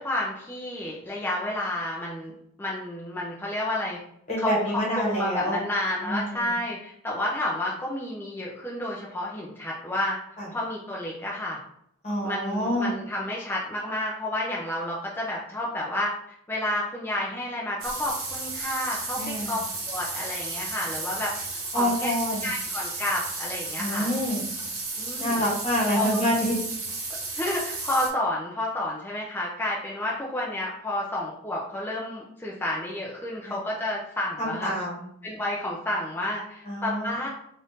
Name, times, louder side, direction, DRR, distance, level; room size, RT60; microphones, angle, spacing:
voice 1, 0.0-2.3 2.6-4.0 4.4-10.2 10.5-11.6 12.2-16.2 16.5-19.6 19.9-21.3 21.7-22.1 22.4-24.1 25.0-25.4 25.9-26.2 27.3-34.7 35.2-37.3, left 1 dB, 10° left, -4 dB, 0.5 m, -30 dB
voice 2, 4.3-5.6 6.0-6.6 10.4-10.5 12.0-12.9 19.2-19.6 21.7-22.5 23.8-24.4 25.2-26.6 33.5-33.6 34.4-35.0 36.6-37.1, equal, 30° left, -5 dB, 1.3 m, -27 dB
sound 1, 17.8-28.1, right 3 dB, 65° right, 1.1 m, -33 dB
4.0 x 2.5 x 3.5 m, 0.72 s
head